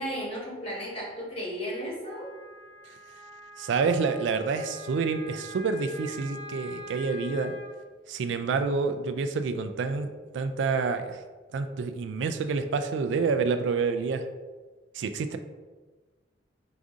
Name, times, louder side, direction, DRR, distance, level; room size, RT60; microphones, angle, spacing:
voice 1, 0.0-2.3, equal, 30° left, -4 dB, 1.3 m, -34 dB
Wind instrument woodwind instrument, 2.0-7.7, left 1 dB, 25° right, 0.8 m, -45 dB
voice 2, 3.6-7.5 8.1-10.1 10.3-11.2 11.5-14.2 14.9-15.4, right 4 dB, 70° right, 9 dB, 0.3 m, -28 dB
4.9 x 2.6 x 3.6 m, 1.3 s
head